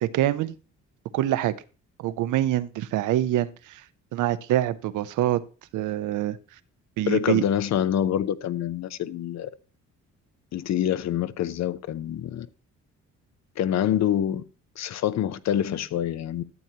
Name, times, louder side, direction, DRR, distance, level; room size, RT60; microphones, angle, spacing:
voice 1, 0.0-0.5 1.1-1.5 2.0-3.8 4.1-5.4 5.7-6.4 7.0-7.4, right 13 dB, 80° right, 0.6 m, -25 dB
voice 2, 7.1-9.5 10.5-12.5 13.6-14.4 14.8-16.4, left 10 dB, 60° left, 0.6 m, -26 dB
12.0 x 7.4 x 2.8 m
cardioid pair, 90°, 30 cm